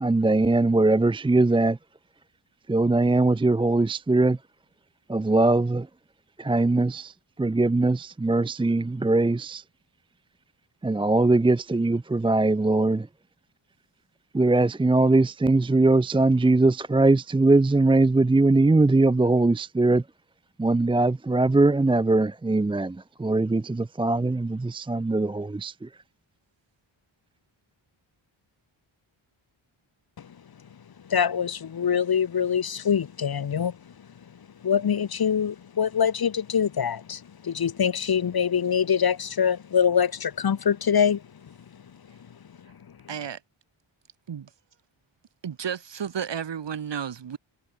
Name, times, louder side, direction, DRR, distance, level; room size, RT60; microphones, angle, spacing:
voice 1, 0.0-1.8 2.7-4.4 5.1-5.9 6.4-9.6 10.8-13.1 14.3-20.0 20.6-25.9, right 2 dB, 10° right, 0.3 m, -21 dB
voice 2, 31.1-33.7 34.6-37.2 37.4-41.2, left 7 dB, 45° left, 0.9 m, -24 dB
voice 3, 43.1-43.4 44.3-44.5 45.4-47.4, right 8 dB, 60° right, 1.4 m, -32 dB
wide cardioid pair, 160°, 50 cm